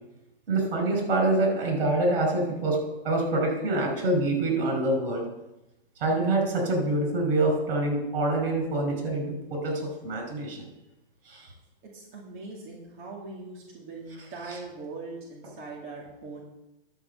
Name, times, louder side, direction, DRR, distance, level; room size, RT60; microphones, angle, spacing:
voice 1, 0.5-2.8 3.0-5.2 6.0-10.7 11.3-11.5 14.2-14.6, right 2 dB, 70° right, 3 dB, 5.2 m, -26 dB
voice 2, 11.9-16.4, right 3 dB, 30° right, -4 dB, 2.5 m, -41 dB
11.0 x 6.4 x 7.7 m, 0.94 s
hypercardioid pair, 160°, 31 cm